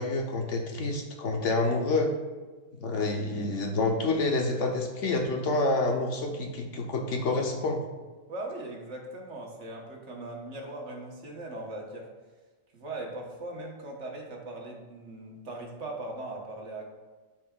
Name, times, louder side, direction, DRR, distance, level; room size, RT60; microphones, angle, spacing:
voice 1, 0.0-2.1 2.8-7.8, left 2 dB, 65° left, 2 dB, 1.1 m, -28 dB
voice 2, 8.3-12.1 12.7-16.9, right 2 dB, 60° right, 0 dB, 1.4 m, -39 dB
12.0 x 4.6 x 2.3 m, 1.3 s
omnidirectional pair, 1.4 m